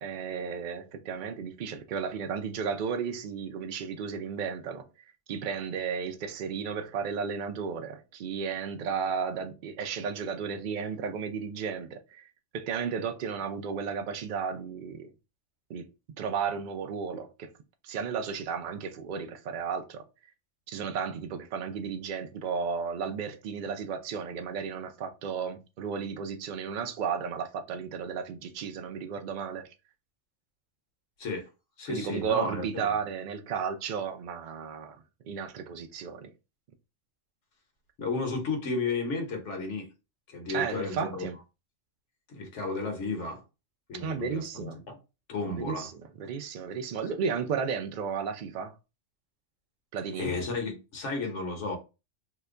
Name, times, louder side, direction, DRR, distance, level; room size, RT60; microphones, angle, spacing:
voice 1, 0.0-4.9 5.3-12.3 12.5-15.1 15.7-15.9 16.2-17.5 17.8-20.0 20.7-29.7 31.9-35.0 35.2-36.3 40.5-41.4 43.9-44.8 45.6-48.7 49.9-50.3, right 6 dB, 60° right, 0.5 m, -33 dB
voice 2, 31.2-31.5 31.8-33.0 38.0-39.9 40.3-41.3 42.3-43.4 43.9-45.0 45.3-45.9 50.2-51.8, left 3 dB, 70° left, 1.2 m, -33 dB
2.9 x 2.1 x 3.6 m
omnidirectional pair, 1.3 m